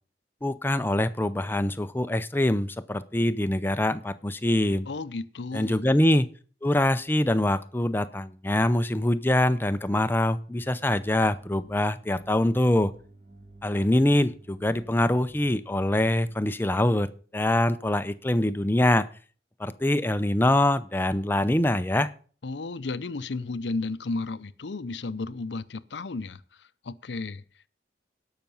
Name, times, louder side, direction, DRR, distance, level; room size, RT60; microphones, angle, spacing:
voice 1, 0.4-4.9 5.5-6.3 6.6-12.9 13.6-19.1 19.6-22.1, left 1 dB, 10° left, 0.5 m, -24 dB
voice 2, 4.9-6.0 22.4-27.4, left 3 dB, 80° left, 0.6 m, -33 dB
sound 1, 10.6-16.4, right 2 dB, 35° right, 1.7 m, -51 dB
17.5 x 5.9 x 5.5 m
head